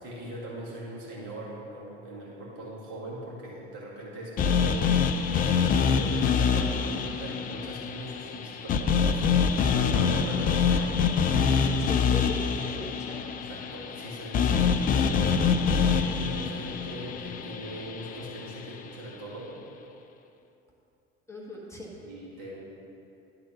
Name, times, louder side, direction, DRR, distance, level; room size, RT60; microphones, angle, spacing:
voice 1, 0.0-5.0 5.2-11.2 13.4-19.6 22.0-22.6, right 1 dB, 55° right, -5 dB, 2.0 m, -40 dB
sound 1, 4.4-18.5, left 6 dB, 25° left, 0.4 m, -25 dB
voice 2, 11.8-13.6 21.3-21.9, left 2 dB, 10° left, -5 dB, 1.5 m, -40 dB
11.0 x 3.9 x 5.8 m, 2.8 s
figure-of-eight pair, 65°, 33 cm